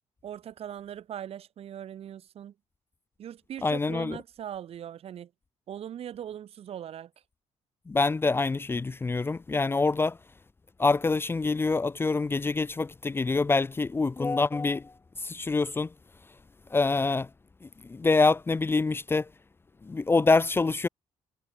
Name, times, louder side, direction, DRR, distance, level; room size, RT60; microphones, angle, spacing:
voice 1, 0.2-2.5 3.2-5.3 5.7-7.1, right 10 dB, 60° right, 3.8 m, -40 dB
voice 2, 3.6-4.2 7.9-10.2 10.8-14.9 15.2-15.9 16.7-17.3 17.9-19.3 19.8-20.9, left 3 dB, 20° left, 0.9 m, -25 dB
cardioid pair, 120°, 12 cm